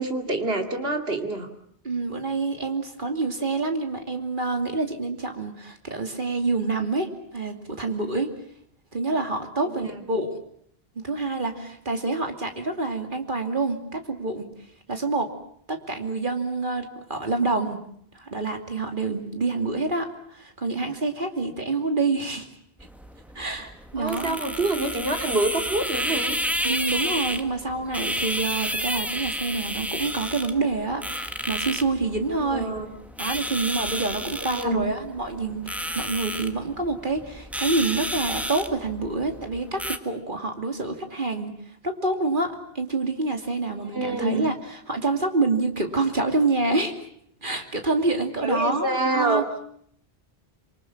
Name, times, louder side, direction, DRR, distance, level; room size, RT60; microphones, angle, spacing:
voice 1, 0.0-1.5 9.6-9.9 24.0-26.4 32.4-32.9 34.4-34.9 43.9-44.5 48.4-49.5, right 2 dB, 70° right, 5 dB, 2.8 m, -26 dB
voice 2, 1.8-8.3 8.9-10.4 11.0-14.5 14.9-15.3 15.7-17.8 18.1-22.5 23.3-24.4 26.6-32.7 33.2-41.5 41.8-44.5 44.9-47.0 47.4-49.4, right 3 dB, 55° right, 5 dB, 2.8 m, -27 dB
sound 1, 22.8-40.0, equal, ahead, 1.5 m, -31 dB
26.5 x 24.0 x 7.3 m, 0.67 s
omnidirectional pair, 1.0 m